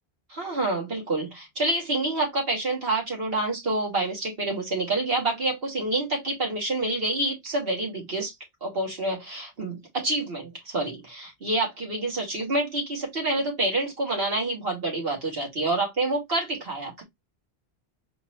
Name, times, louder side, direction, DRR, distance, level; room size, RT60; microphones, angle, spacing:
voice 1, 0.3-8.3 8.6-17.0, right 2 dB, 65° right, 2.4 m, -27 dB
4.4 x 3.0 x 2.9 m
omnidirectional pair, 1.1 m